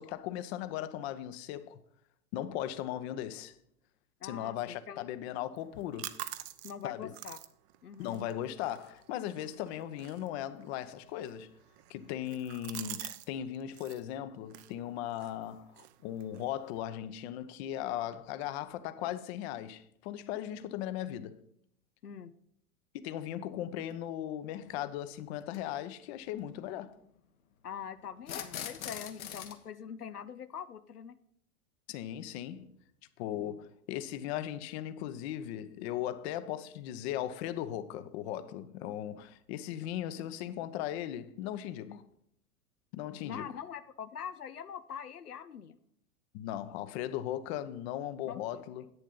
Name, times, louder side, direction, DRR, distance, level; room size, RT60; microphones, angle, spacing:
voice 1, 0.0-1.8 2.3-3.5 4.2-6.1 6.8-7.1 8.0-11.5 11.9-21.4 23.0-27.0 31.9-32.7 33.2-42.0 42.9-43.5 46.3-48.9, left 11 dB, 45° left, 0.9 m, -38 dB
voice 2, 4.2-5.1 6.6-7.4 7.8-8.2 22.0-22.3 27.6-31.2 33.3-33.7 41.9-42.0 43.2-45.8 48.3-48.6, left 8 dB, 90° left, 0.6 m, -44 dB
sound 1, 5.6-13.3 13.5-14.0 14.5-16.8, right 14 dB, 45° right, 0.8 m, -48 dB
sound 2, 23.9-24.0 25.4-25.6 28.2-29.6, left 9 dB, 65° left, 1.3 m, -41 dB
10.5 x 8.7 x 3.9 m
figure-of-eight pair, 95°, 45 cm